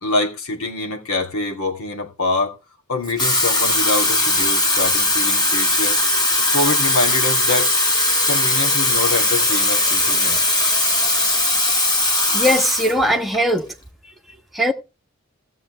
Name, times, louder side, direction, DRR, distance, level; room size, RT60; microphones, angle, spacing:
voice 1, 0.0-2.6 2.9-7.7 8.3-10.4, left 2 dB, 70° left, 2.7 m, -25 dB
Water tap faucet / Fill (with liquid), 3.0-13.0 13.3-13.6, left 2 dB, 20° left, 2.4 m, -19 dB
voice 2, 12.3-13.7 14.0-14.7, equal, ahead, 1.4 m, -20 dB
16.5 x 7.6 x 3.3 m
head